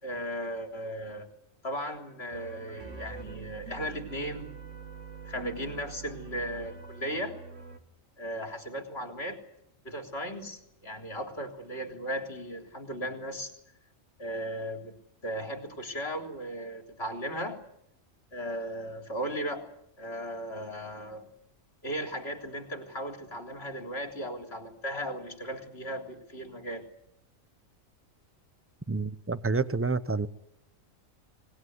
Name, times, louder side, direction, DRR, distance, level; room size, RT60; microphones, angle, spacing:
voice 1, 0.0-1.3 1.6-4.5 5.3-7.4 8.2-9.4 9.8-13.5 14.2-15.0 15.2-17.6 18.3-19.7 20.0-21.3 21.8-26.9, equal, 50° left, 4.0 m, -36 dB
sound 1, 2.3-7.8, right 5 dB, 65° right, 2.0 m, -44 dB
voice 2, 28.9-30.3, right 4 dB, 10° right, 0.8 m, -28 dB
25.0 x 21.0 x 9.7 m
omnidirectional pair, 1.4 m